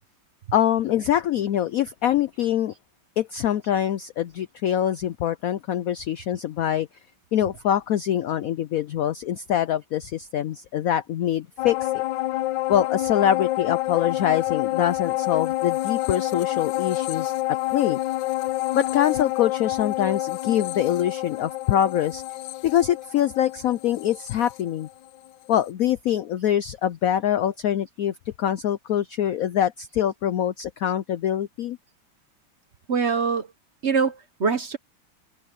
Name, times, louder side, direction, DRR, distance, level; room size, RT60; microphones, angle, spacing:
voice 1, 0.5-2.7 3.2-6.9 7.3-11.9 12.7-18.0 18.7-22.2 22.6-24.9 25.5-31.8, left 10 dB, 85° left, 0.7 m, -24 dB
sound 1, 11.6-25.3 25.7-25.8, left 17 dB, 70° left, 1.2 m, -28 dB
voice 2, 32.9-33.5 33.8-34.8, right 5 dB, 40° right, 1.1 m, -23 dB
omnidirectional pair, 2.1 m